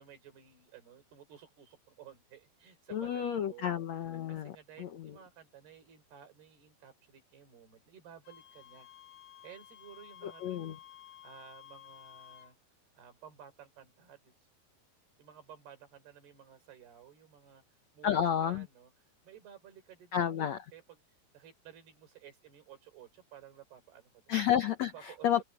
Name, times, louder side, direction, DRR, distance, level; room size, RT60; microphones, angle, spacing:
voice 1, 0.0-3.7 4.3-8.9 9.4-10.8 11.2-12.6 13.0-14.3 15.2-17.6 17.9-21.0 21.3-24.3 24.9-25.4, right 9 dB, 75° right, 6.2 m, -54 dB
voice 2, 2.9-4.5 4.8-5.1 10.2-10.8 18.0-18.6 20.1-20.6 24.3-25.4, left 9 dB, 75° left, 1.6 m, -31 dB
Wind instrument woodwind instrument, 8.2-12.5, left 10 dB, 60° left, 3.4 m, -54 dB
open air
omnidirectional pair, 4.7 m